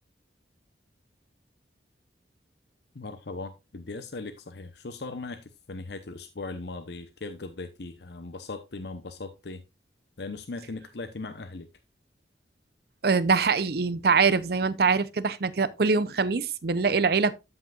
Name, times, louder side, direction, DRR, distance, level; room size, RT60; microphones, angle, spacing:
voice 1, 2.9-5.4 5.7-9.6 10.2-11.7, left 3 dB, 70° left, 0.8 m, -38 dB
voice 2, 13.0-17.3, right 4 dB, 60° right, 0.6 m, -23 dB
13.5 x 5.6 x 2.4 m
head